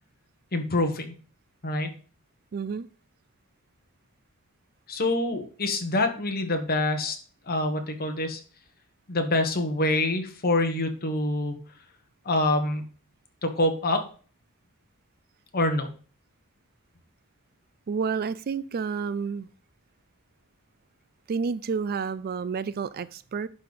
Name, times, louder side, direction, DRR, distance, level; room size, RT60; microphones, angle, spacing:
voice 1, 0.5-1.0 1.6-1.9 4.9-7.2 7.5-8.4 9.1-11.5 12.2-12.8 13.4-14.0 15.5-15.9, left 2 dB, 45° left, 6 dB, 1.5 m, -26 dB
voice 2, 2.5-2.9 17.9-19.5 21.3-23.5, right 5 dB, 40° right, 17 dB, 0.4 m, -30 dB
11.0 x 4.1 x 5.3 m, 0.40 s
head